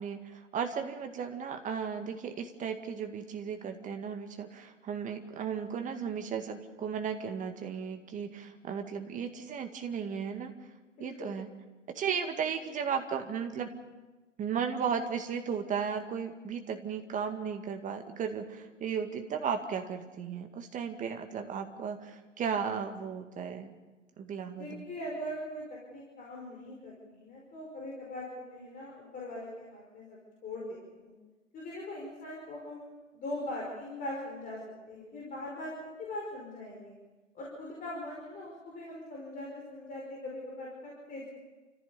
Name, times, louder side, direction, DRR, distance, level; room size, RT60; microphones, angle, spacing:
voice 1, 0.0-10.5 11.0-11.5 11.9-13.7 14.4-23.7 24.2-24.8, right 7 dB, 20° right, 6 dB, 2.0 m, -35 dB
voice 2, 11.0-11.4 24.5-31.1 31.5-36.9 37.3-41.3, left 1 dB, 20° left, -3 dB, 5.2 m, -41 dB
29.5 x 15.0 x 7.0 m, 1.2 s
figure-of-eight pair, 110°, 38 cm